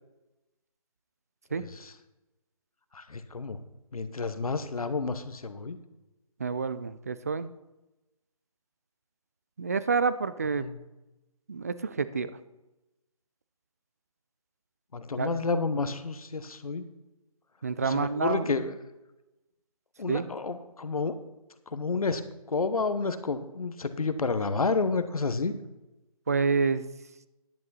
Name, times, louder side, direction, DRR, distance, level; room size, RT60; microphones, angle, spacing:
voice 1, 1.5-1.9 2.9-3.6 3.9-5.8 10.6-10.8 14.9-16.8 17.8-18.7 20.0-21.1 21.7-22.2 22.5-25.5, left 4 dB, 70° left, 11 dB, 1.1 m, -30 dB
voice 2, 6.4-7.5 9.6-10.7 11.5-12.3 15.2-15.4 17.6-18.6 20.1-20.3 26.3-26.8, right 4 dB, 25° right, 14 dB, 0.3 m, -28 dB
10.5 x 8.5 x 4.1 m, 1.0 s
figure-of-eight pair, 150°, 19 cm